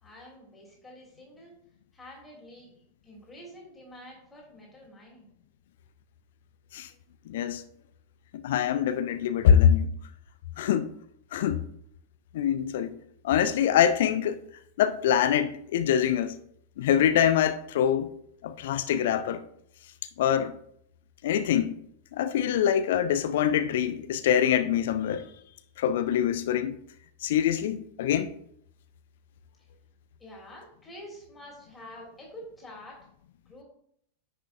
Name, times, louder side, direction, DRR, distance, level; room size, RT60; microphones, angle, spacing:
voice 1, 0.0-1.6 1.9-2.7 3.0-5.3 30.2-33.0 33.5-33.6, left 1 dB, 10° left, 3.0 m, -47 dB
voice 2, 7.3-7.6 8.3-9.9 10.6-10.9 11.3-11.6 12.3-12.9 13.2-14.4 14.8-16.3 16.8-18.1 18.4-19.4 20.2-20.5 21.2-21.7 22.1-25.3 25.8-26.8 27.2-28.3, left 9 dB, 55° left, 0.4 m, -24 dB
10.0 x 5.6 x 2.5 m
figure-of-eight pair, 90°, 0 cm